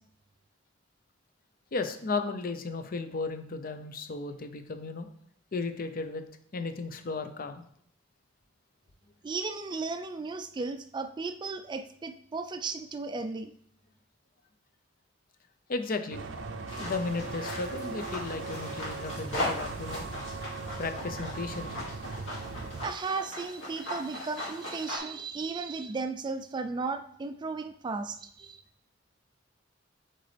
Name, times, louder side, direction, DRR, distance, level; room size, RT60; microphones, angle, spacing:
voice 1, 1.7-5.1 5.5-6.2 6.5-7.6 15.7-16.2 16.8-20.0 20.8-21.9, left 3 dB, 50° left, 9 dB, 0.6 m, -34 dB
voice 2, 9.2-13.5 22.8-28.6, right 4 dB, 25° right, 9 dB, 0.3 m, -35 dB
sound 1, 16.1-22.9, right 3 dB, 75° right, 0.5 m, -39 dB
sound 2, 16.7-25.0, left 1 dB, 80° left, 2.3 m, -39 dB
7.9 x 3.9 x 3.3 m, 0.66 s
head